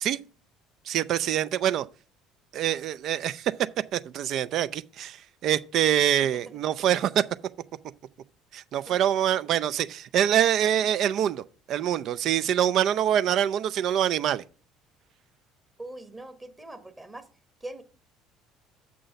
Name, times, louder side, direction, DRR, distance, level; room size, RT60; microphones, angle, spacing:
voice 1, 0.9-1.9 2.5-3.5 3.9-7.2 8.5-14.4, right 10 dB, 50° right, 0.4 m, -25 dB
voice 2, 6.2-6.5 8.9-9.0 15.8-17.3 17.6-17.8, right 2 dB, 20° right, 1.2 m, -42 dB
7.0 x 6.2 x 5.4 m
figure-of-eight pair, 60°, 0 cm